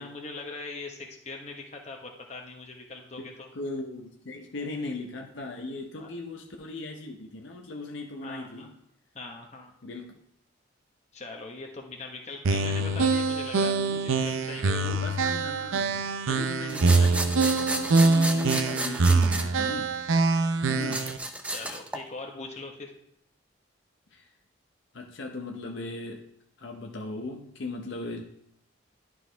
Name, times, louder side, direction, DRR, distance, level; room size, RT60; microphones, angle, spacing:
voice 1, 0.0-3.5 6.0-6.1 8.2-8.7 9.1-9.7 11.1-14.9 16.3-16.5 21.4-22.9, left 3 dB, 35° left, 1 dB, 1.1 m, -41 dB
voice 2, 3.2-8.7 9.8-10.2 14.8-20.2 20.7-21.1 24.1-24.3 24.9-26.2 26.6-28.2, left 2 dB, 65° left, 1 dB, 0.7 m, -38 dB
sound 1, 12.4-21.2, right 3 dB, 85° right, 0.5 m, -24 dB
sound 2, 16.7-19.4 20.8-22.0, right 1 dB, 5° right, 0.4 m, -32 dB
11.0 x 4.7 x 3.4 m, 0.76 s
head